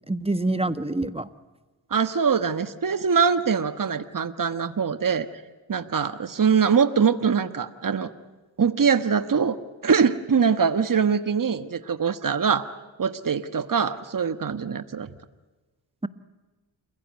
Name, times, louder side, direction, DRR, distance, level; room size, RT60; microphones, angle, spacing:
voice 1, 0.1-1.3, right 2 dB, 10° right, 12 dB, 1.4 m, -26 dB
voice 2, 1.9-5.3 5.7-8.1 8.6-9.6 9.8-12.7 13.0-15.1, right 6 dB, 45° right, 11 dB, 1.5 m, -23 dB
29.0 x 16.5 x 9.5 m, 1.2 s
cardioid pair, 55°, 46 cm